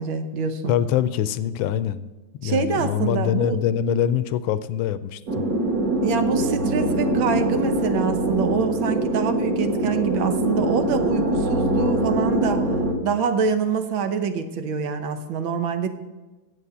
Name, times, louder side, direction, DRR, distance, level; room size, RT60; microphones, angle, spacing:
voice 1, 0.0-0.8 2.4-3.6 6.0-12.7 13.0-15.9, right 6 dB, 90° right, 8 dB, 1.7 m, -25 dB
voice 2, 0.7-2.1 2.4-5.5, left 9 dB, 80° left, 15 dB, 1.3 m, -24 dB
sound 1, 5.3-12.9, right 1 dB, 50° right, 1.7 m, -23 dB
8.4 x 7.7 x 8.0 m, 1.2 s
omnidirectional pair, 2.2 m